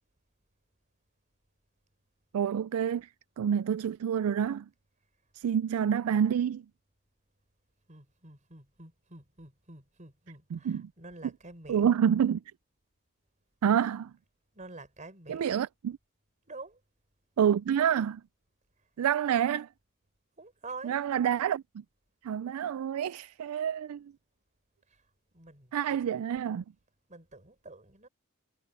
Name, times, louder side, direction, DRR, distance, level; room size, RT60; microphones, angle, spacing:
voice 1, 2.3-3.1 3.4-4.7 5.3-6.7 10.5-10.9 11.7-12.4 13.6-14.1 15.3-16.0 17.4-18.2 19.0-19.7 20.8-21.8 22.2-24.1 25.7-26.6, right 8 dB, 80° right, 0.3 m, -28 dB
voice 2, 7.9-11.9 14.5-15.5 16.5-16.8 18.8-18.9 20.4-21.0 24.9-26.1 27.1-28.1, right 3 dB, 35° right, 4.8 m, -48 dB
head